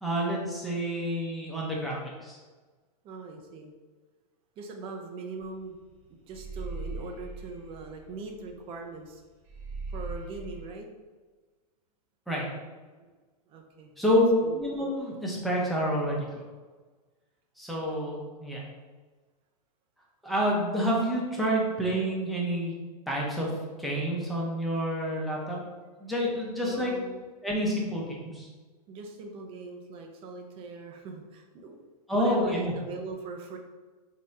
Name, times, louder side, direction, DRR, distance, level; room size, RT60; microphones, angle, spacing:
voice 1, 0.0-2.4 12.3-12.5 14.0-16.3 17.6-18.6 20.2-22.8 23.1-23.5 23.8-25.6 26.0-26.9 27.4-28.5 32.1-32.7, equal, ahead, -4 dB, 0.7 m, -28 dB
voice 2, 3.0-3.7 4.6-5.8 6.2-9.2 9.9-10.9 13.0-13.1 13.5-14.2 14.4-14.6 26.6-27.2 28.9-31.8 32.1-33.6, right 3 dB, 25° right, 3 dB, 0.5 m, -41 dB
sound 1, 5.4-5.6 5.9-8.7 9.0-9.1 9.5-10.7, right 3 dB, 45° right, 1.1 m, -39 dB
3.4 x 2.8 x 3.2 m, 1.3 s
hypercardioid pair, 130°, 20 cm